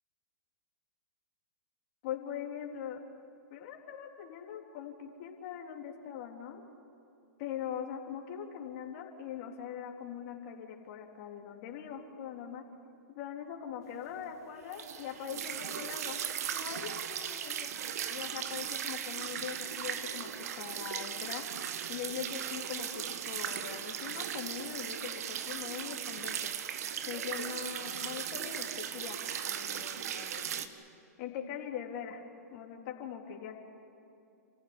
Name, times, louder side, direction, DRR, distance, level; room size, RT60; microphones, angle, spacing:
voice 1, 2.0-3.0 3.5-6.6 7.4-12.6 13.1-16.2 16.5-17.7 18.1-20.3 20.6-21.5 21.9-26.5 27.1-30.6 31.2-32.2 32.5-33.6, left 9 dB, 50° left, 1 dB, 3.7 m, -42 dB
sound 1, 14.7-30.7, right 9 dB, 65° right, 1.6 m, -37 dB
29.0 x 15.5 x 9.9 m, 2.7 s
hypercardioid pair, 125°, 9 cm